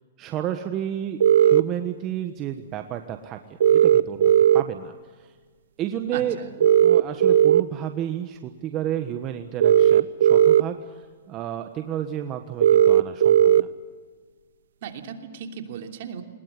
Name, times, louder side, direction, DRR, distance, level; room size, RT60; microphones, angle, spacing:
voice 1, 0.2-5.3 5.8-13.7, right 10 dB, 30° right, 7 dB, 1.3 m, -32 dB
sound 1, 1.2-1.6 3.6-4.6 6.6-7.6 9.6-10.6 12.6-13.6, right 10 dB, 80° right, 0.8 m, -16 dB
voice 2, 6.1-6.5 14.8-16.2, right 7 dB, 55° right, 5 dB, 3.1 m, -36 dB
21.0 x 20.5 x 9.7 m, 1.4 s
hypercardioid pair, 140°, 0 cm